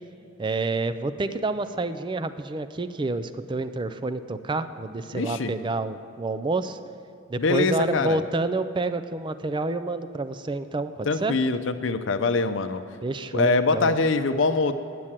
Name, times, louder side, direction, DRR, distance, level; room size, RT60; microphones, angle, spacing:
voice 1, 0.4-6.8 7.3-11.4 13.0-13.9, right 3 dB, 25° right, 11 dB, 0.4 m, -28 dB
voice 2, 5.1-5.5 7.4-8.2 11.1-12.8 13.3-14.7, left 3 dB, 70° left, 9 dB, 0.6 m, -23 dB
9.8 x 7.6 x 7.4 m, 2.7 s
head